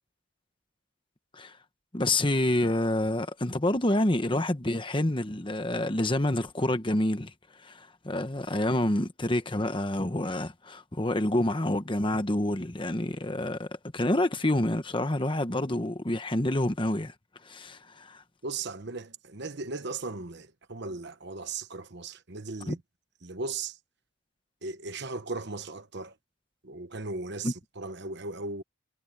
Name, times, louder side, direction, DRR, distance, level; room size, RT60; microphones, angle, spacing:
voice 1, 1.9-7.3 7.6-17.1 17.4-18.2 22.6-22.8 27.4-27.5, left 1 dB, 25° left, 1.1 m, -28 dB
voice 2, 18.4-22.8 23.2-23.8 24.6-26.1 26.6-28.6, right 3 dB, 55° right, 1.2 m, -37 dB
head